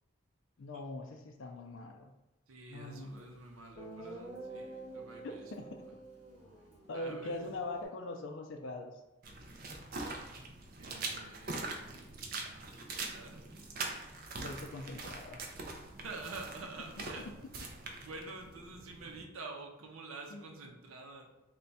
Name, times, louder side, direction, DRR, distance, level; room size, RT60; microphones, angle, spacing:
voice 1, 0.6-2.1 2.7-3.3 5.2-5.8 6.9-8.9 14.3-15.4 20.3-20.7, left 2 dB, 65° left, 4 dB, 0.4 m, -42 dB
voice 2, 2.5-5.4 6.9-7.5 10.8-12.1 12.9-13.5 16.0-17.3 18.1-21.3, right 3 dB, 85° right, 2 dB, 0.6 m, -48 dB
Guitar, 3.2-3.3 3.7-7.9, right 2 dB, 30° right, 1.4 m, -48 dB
sound 1, 9.2-19.2, right 3 dB, 45° right, 0.5 m, -43 dB
3.3 x 2.3 x 4.0 m, 0.98 s
head